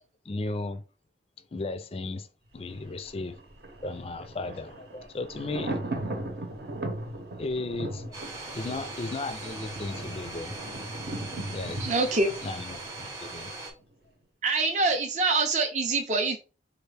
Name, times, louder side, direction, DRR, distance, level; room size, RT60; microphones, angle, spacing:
voice 1, 0.3-0.8 1.5-2.3 2.5-3.4 3.8-6.2 7.4-8.1 8.5-10.6 11.5-13.5, left 2 dB, 35° left, 0.4 m, -35 dB
Thunder, 2.6-13.5 13.8-13.9, right 1 dB, 65° right, 0.9 m, -38 dB
Domestic sounds home sounds, 8.1-13.7, right 3 dB, 20° right, 0.8 m, -40 dB
voice 2, 11.8-12.3 14.4-16.4, right 3 dB, 40° right, 0.5 m, -25 dB
4.4 x 2.4 x 3.3 m
head